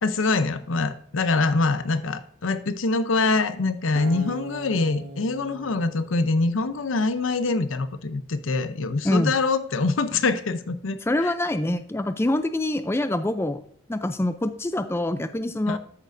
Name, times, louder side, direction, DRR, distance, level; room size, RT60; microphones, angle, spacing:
voice 1, 0.0-11.3 15.7-15.8, left 3 dB, 75° left, 11 dB, 0.6 m, -24 dB
Acoustic guitar, 4.0-7.2, right 2 dB, 55° right, 0.9 m, -40 dB
voice 2, 11.1-13.6 13.9-15.8, left 1 dB, 10° left, 10 dB, 0.4 m, -25 dB
13.5 x 6.5 x 2.6 m, 0.63 s
head